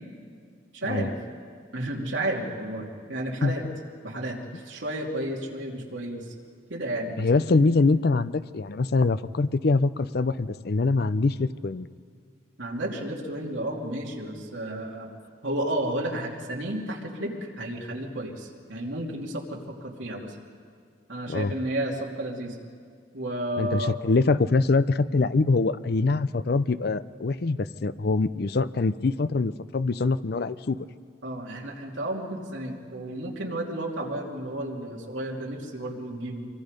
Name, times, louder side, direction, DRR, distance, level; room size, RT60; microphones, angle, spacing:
voice 1, 0.7-1.1 1.7-3.6 4.0-4.4 4.6-6.2 6.7-7.4 12.6-15.1 15.4-20.3 21.1-22.6 23.1-24.0 31.2-36.5, right 1 dB, 75° right, -1 dB, 2.8 m, -32 dB
voice 2, 3.4-3.7 7.2-11.9 21.3-21.5 23.6-30.8, left 3 dB, 55° left, 14 dB, 0.5 m, -24 dB
24.5 x 24.0 x 5.2 m, 2.1 s
head